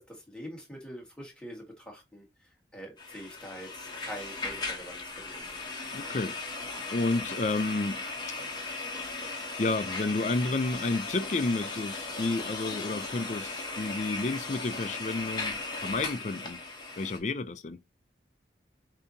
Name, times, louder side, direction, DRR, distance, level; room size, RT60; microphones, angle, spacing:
voice 1, 0.0-2.2 2.7-5.6, equal, 5° left, 1.5 m, -44 dB
sound 1, 3.0-17.2, left 3 dB, 25° left, 1.1 m, -37 dB
voice 2, 5.9-8.0 9.6-16.6 17.0-17.8, left 3 dB, 40° left, 0.4 m, -31 dB
6.9 x 2.8 x 2.7 m
head